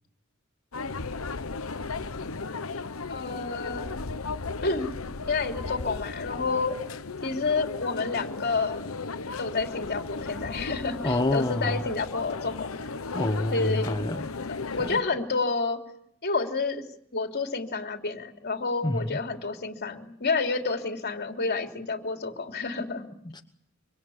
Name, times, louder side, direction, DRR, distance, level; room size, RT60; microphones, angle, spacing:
sound 1, 0.7-15.0, left 4 dB, 85° left, 1.0 m, -35 dB
voice 1, 3.1-3.9 4.6-4.9 5.3-6.8 7.2-8.9 9.4-12.8 13.5-13.9 14.8-15.8 16.2-16.8 17.1-23.1, left 4 dB, 50° left, 3.3 m, -29 dB
voice 2, 11.0-11.8 13.1-14.3 14.9-15.0 18.8-19.1 23.2-23.4, left 1 dB, 20° left, 1.0 m, -27 dB
26.5 x 25.5 x 7.3 m
head